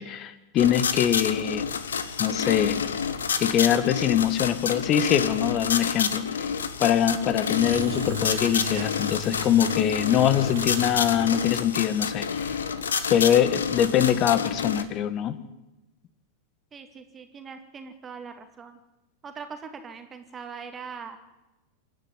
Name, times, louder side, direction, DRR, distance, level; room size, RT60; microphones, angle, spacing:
voice 1, 0.0-1.7 2.2-2.8 3.4-6.5 6.8-12.6 13.1-15.4, left 10 dB, 35° left, 15 dB, 1.6 m, -23 dB
sound 1, 0.6-14.8, left 6 dB, 70° left, 1.5 m, -29 dB
Engine / Drill, 7.3-11.9, left 1 dB, 60° right, 2.7 m, -37 dB
voice 2, 16.7-18.8 19.2-21.2, right 5 dB, 20° right, 7 dB, 2.2 m, -41 dB
27.5 x 10.5 x 9.9 m, 1.0 s
figure-of-eight pair, 90°, 0 cm